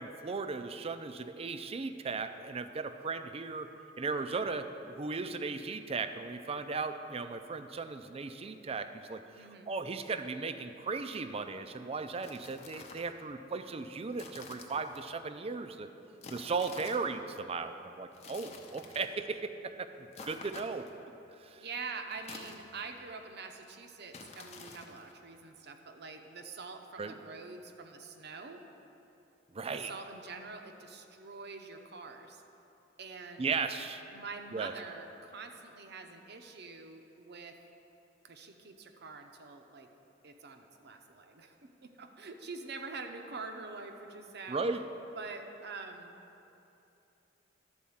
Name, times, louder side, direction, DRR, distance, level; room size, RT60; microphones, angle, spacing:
voice 1, 0.0-3.7 4.0-15.9 16.3-20.9 21.4-21.7 27.0-27.2 29.5-29.9 33.4-34.0 34.5-34.7 44.5-44.8, right 4 dB, 30° right, 9 dB, 0.4 m, -36 dB
voice 2, 9.3-9.7 21.5-28.6 29.7-32.4 33.0-33.5 34.1-37.6 38.2-39.9 40.2-44.6 45.1-46.2, right 4 dB, 60° right, 5 dB, 0.7 m, -45 dB
sound 1, 12.1-13.1 14.1-15.0 16.2-17.1 18.1-19.1 20.1-21.0 22.1-23.0 24.1-25.1, left 3 dB, 35° left, 0.7 m, -49 dB
11.5 x 4.2 x 7.1 m, 2.9 s
head